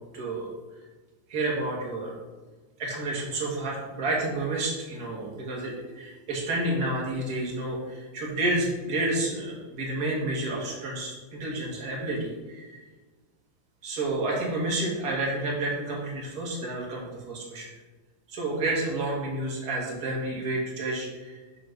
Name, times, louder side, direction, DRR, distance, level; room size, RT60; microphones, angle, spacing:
voice 1, 0.1-0.5 1.3-2.1 2.8-12.8 13.8-17.7 18.3-21.4, right 2 dB, 40° right, -3 dB, 1.7 m, -30 dB
5.2 x 5.0 x 5.9 m, 1.3 s
omnidirectional pair, 3.4 m